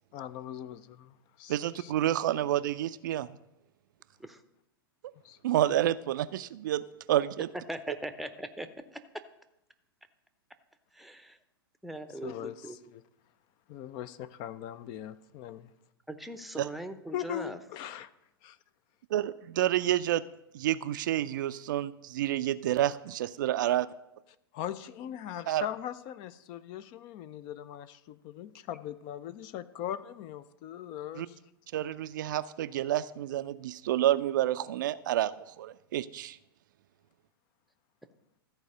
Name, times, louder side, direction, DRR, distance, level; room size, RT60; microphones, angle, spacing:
voice 1, 0.1-1.9 5.2-5.4 12.2-13.0 13.7-15.7 17.1-18.1 18.4-18.6 24.5-31.4, left 11 dB, 35° left, 15 dB, 0.5 m, -40 dB
voice 2, 1.5-3.3 5.4-7.5 7.9-8.0 16.6-16.7 19.1-20.2 20.5-23.9 25.5-25.7 31.2-31.3 31.7-36.4, right 13 dB, 55° right, 14 dB, 0.4 m, -29 dB
voice 3, 7.7-9.0 10.9-11.4 11.8-12.9 16.1-17.6, right 1 dB, ahead, 9 dB, 0.7 m, -40 dB
13.5 x 4.8 x 6.6 m, 0.85 s
figure-of-eight pair, 100°, 13 cm